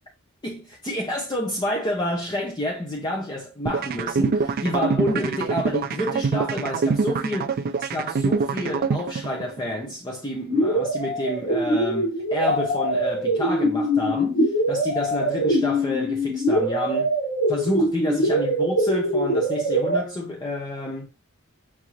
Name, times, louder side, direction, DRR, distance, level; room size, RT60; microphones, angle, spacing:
voice 1, 0.4-17.1 17.5-21.1, left 1 dB, 20° left, 0.6 m, -29 dB
sound 1, 3.7-9.7, right 4 dB, 45° right, 0.3 m, -25 dB
sound 2, 10.5-20.0, equal, 80° left, 1.5 m, -23 dB
5.8 x 2.6 x 2.9 m
head